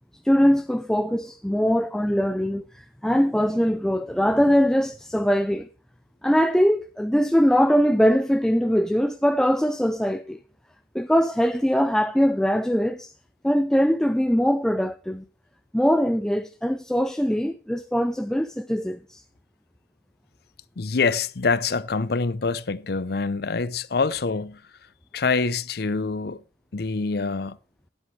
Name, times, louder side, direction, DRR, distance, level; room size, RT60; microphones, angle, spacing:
voice 1, 0.2-5.7 6.2-10.4 10.9-13.1 13.4-15.2 15.7-19.2, equal, 5° left, 0.4 m, -22 dB
voice 2, 20.8-24.6 25.1-26.4 26.7-27.6, left 4 dB, 60° left, 0.6 m, -25 dB
15.5 x 8.1 x 3.2 m
head